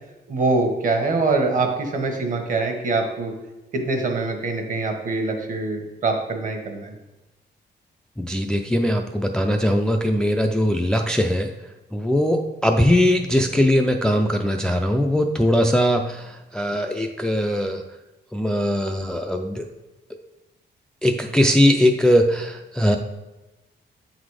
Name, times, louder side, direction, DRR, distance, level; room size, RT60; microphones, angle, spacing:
voice 1, 0.3-3.3 3.7-6.9, right 3 dB, 50° right, 4 dB, 1.2 m, -24 dB
voice 2, 8.2-11.5 11.9-17.8 18.3-19.7 21.0-23.0, equal, 5° left, 4 dB, 0.3 m, -20 dB
7.9 x 4.0 x 4.8 m, 1.0 s
wide cardioid pair, 160°, 18 cm